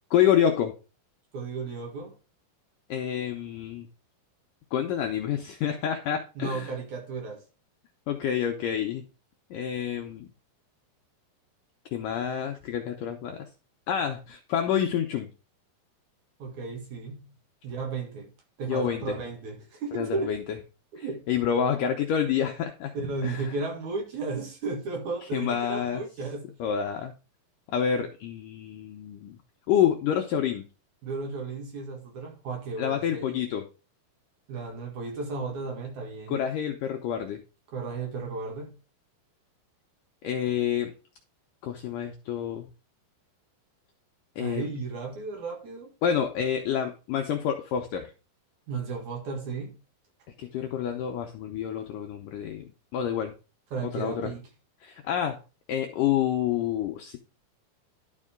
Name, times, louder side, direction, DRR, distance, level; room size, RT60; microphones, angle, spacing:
voice 1, 0.1-0.7 2.9-3.9 4.7-6.7 8.1-9.0 9.5-10.3 11.9-13.5 13.9-15.3 18.7-19.2 20.0-20.4 21.0-22.9 23.2-23.5 25.3-26.0 26.6-27.1 27.7-29.4 29.7-30.6 32.8-33.6 36.3-37.4 40.2-40.9 41.6-42.7 44.4-44.7 46.0-48.1 50.4-53.3 53.9-54.3 54.8-55.4 55.7-57.2, left 9 dB, 80° left, 1.9 m, -28 dB
voice 2, 1.3-2.1 6.4-7.4 16.4-17.4 17.6-18.3 18.6-20.3 20.9-21.3 22.9-26.6 31.0-33.4 34.5-36.5 37.7-38.7 44.4-45.9 48.7-49.7 53.7-54.5, right 4 dB, 55° right, 2.6 m, -34 dB
11.5 x 5.4 x 3.7 m
omnidirectional pair, 4.7 m